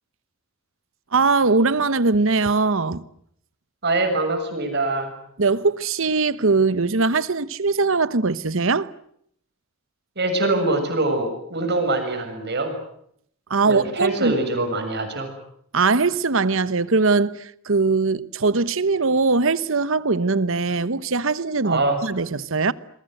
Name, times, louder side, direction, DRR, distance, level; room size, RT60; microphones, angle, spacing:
voice 1, 1.1-3.0 5.4-8.9 13.5-14.4 15.7-22.7, right 4 dB, 70° right, 1.0 m, -21 dB
voice 2, 3.8-5.1 10.2-12.8 13.6-15.3 21.6-22.0, right 2 dB, 55° right, 7.0 m, -23 dB
29.0 x 22.5 x 7.9 m
head